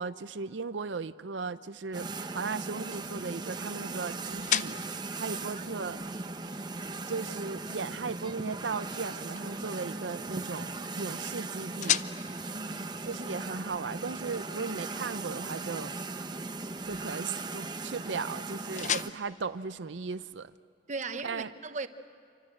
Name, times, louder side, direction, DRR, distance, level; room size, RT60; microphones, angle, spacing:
voice 1, 0.0-2.1 2.3-4.8 5.2-6.0 7.1-12.0 13.0-15.9 16.8-20.5 21.2-21.5, right 4 dB, 85° right, 0.6 m, -36 dB
sound 1, 1.8-20.6, left 9 dB, 40° left, 0.6 m, -40 dB
sound 2, 1.9-19.1, right 3 dB, 25° right, 0.9 m, -38 dB
voice 2, 5.6-5.9 12.5-13.3 20.9-21.9, right 3 dB, 40° right, 1.1 m, -39 dB
28.5 x 24.5 x 7.7 m
head